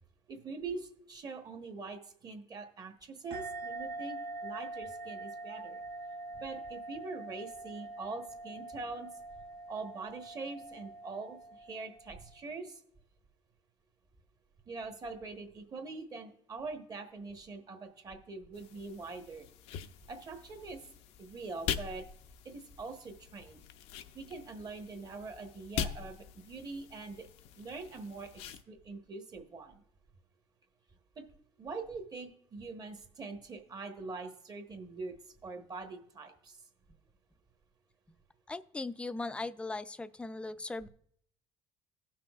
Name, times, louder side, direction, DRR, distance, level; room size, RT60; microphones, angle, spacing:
voice 1, 0.3-5.8 6.3-9.1 9.7-12.8 14.7-19.5 20.1-20.8 21.2-22.0 22.4-23.6 24.1-27.3 27.6-29.8 31.1-31.2 31.6-36.6, right 3 dB, 35° right, 6 dB, 1.1 m, -43 dB
sound 1, 3.3-12.4, right 2 dB, 65° right, 0.7 m, -44 dB
sound 2, 18.5-28.6, left 9 dB, 75° left, 0.5 m, -43 dB
voice 2, 38.5-40.9, left 3 dB, 10° left, 14 dB, 0.3 m, -39 dB
18.0 x 6.1 x 2.3 m, 0.64 s
cardioid pair, 115°, 11 cm